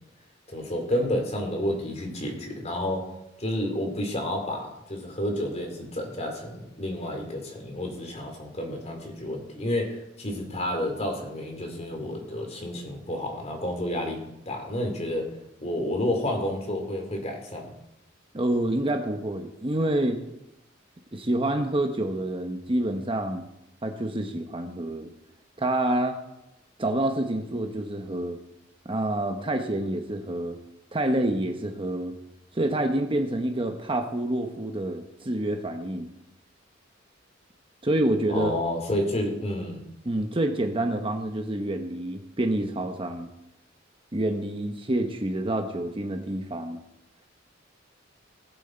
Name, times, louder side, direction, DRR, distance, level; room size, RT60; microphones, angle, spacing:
voice 1, 0.5-3.1 3.4-14.2 14.5-15.3 15.6-17.7 38.3-39.8, left 1 dB, 35° left, 3 dB, 2.7 m, -30 dB
voice 2, 18.3-20.2 21.1-23.5 23.8-25.1 25.6-26.2 26.8-28.4 28.8-30.6 30.9-32.1 32.5-36.1 37.8-38.5 40.0-43.3 44.1-46.8, right 1 dB, 25° right, 5 dB, 0.9 m, -27 dB
19.5 x 7.7 x 4.4 m, 0.86 s
head